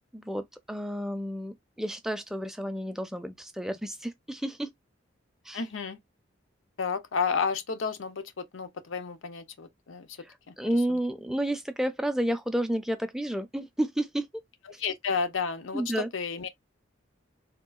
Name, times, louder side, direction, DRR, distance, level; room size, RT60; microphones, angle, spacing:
voice 1, 0.1-4.7 5.5-5.6 10.6-14.4 15.7-16.1, right 1 dB, ahead, 0.4 m, -31 dB
voice 2, 5.5-6.0 6.8-10.2 10.5-11.0 14.8-16.5, left 5 dB, 85° left, 0.6 m, -32 dB
3.6 x 2.3 x 2.3 m
head